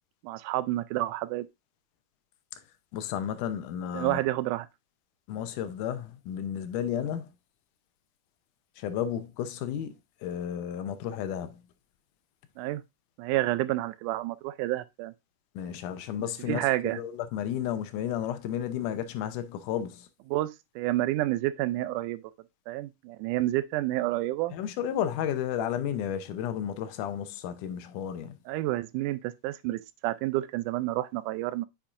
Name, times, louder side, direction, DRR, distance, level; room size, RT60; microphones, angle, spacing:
voice 1, 0.2-1.5 3.9-4.7 12.6-12.8 13.2-15.1 16.5-17.0 20.3-22.2 22.7-24.5 28.5-31.7, right 16 dB, 85° right, 2.0 m, -29 dB
voice 2, 2.9-4.2 5.3-7.3 8.8-9.9 10.2-11.6 15.6-20.1 24.5-28.3, left 9 dB, 85° left, 2.2 m, -32 dB
8.6 x 5.8 x 2.5 m
omnidirectional pair, 3.6 m